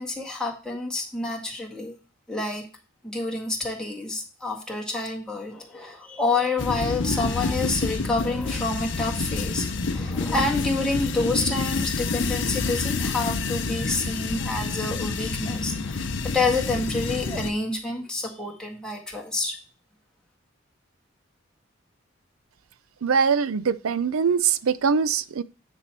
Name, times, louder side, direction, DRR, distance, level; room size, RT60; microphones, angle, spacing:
voice 1, 0.0-2.0 2.3-2.6 3.0-19.6, left 3 dB, 5° left, 1.8 m, -28 dB
sound 1, 6.6-17.5, left 3 dB, 60° left, 0.7 m, -28 dB
voice 2, 23.0-25.4, right 6 dB, 85° right, 0.5 m, -22 dB
9.6 x 4.5 x 4.5 m
head